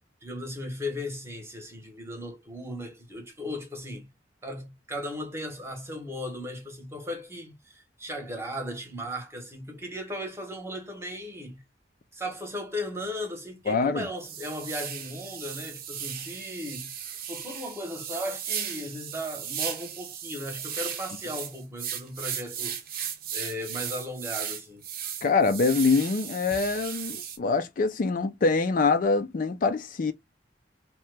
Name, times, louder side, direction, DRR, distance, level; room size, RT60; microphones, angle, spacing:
voice 1, 0.2-4.1 4.4-11.6 12.1-16.9 17.3-24.8, left 1 dB, 15° right, 0.9 m, -36 dB
sound 1, 13.0-13.1 13.6-13.7 14.2-27.4, right 9 dB, 55° right, 0.6 m, -36 dB
voice 2, 13.7-14.1 25.2-30.1, left 4 dB, 50° left, 0.4 m, -24 dB
2.8 x 2.2 x 3.2 m
head